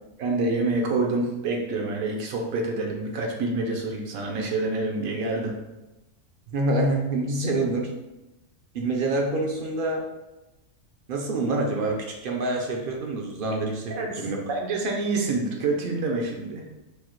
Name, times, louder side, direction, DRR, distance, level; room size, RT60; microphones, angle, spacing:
voice 1, 0.2-5.5 13.9-16.6, right 3 dB, 85° right, 0 dB, 1.1 m, -27 dB
voice 2, 6.5-7.9 8.7-10.0 11.1-14.4, right 2 dB, 65° right, 0 dB, 0.5 m, -26 dB
4.8 x 2.1 x 3.0 m, 1.0 s
omnidirectional pair, 1.4 m